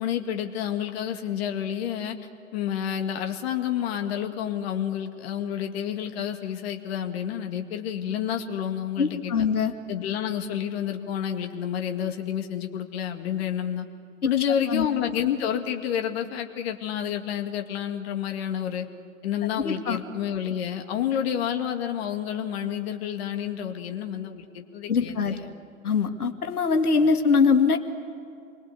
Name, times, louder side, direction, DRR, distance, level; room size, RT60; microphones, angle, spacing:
voice 1, 0.0-2.2 2.5-9.4 9.9-13.9 14.2-18.9 19.2-25.5, left 9 dB, 45° left, 5 dB, 2.2 m, -29 dB
voice 2, 9.0-9.7 14.7-14.9 19.6-20.0 24.9-25.4 25.8-27.8, left 5 dB, 80° left, 6 dB, 2.1 m, -22 dB
29.0 x 23.5 x 8.3 m, 2.5 s
hypercardioid pair, 125°, 44 cm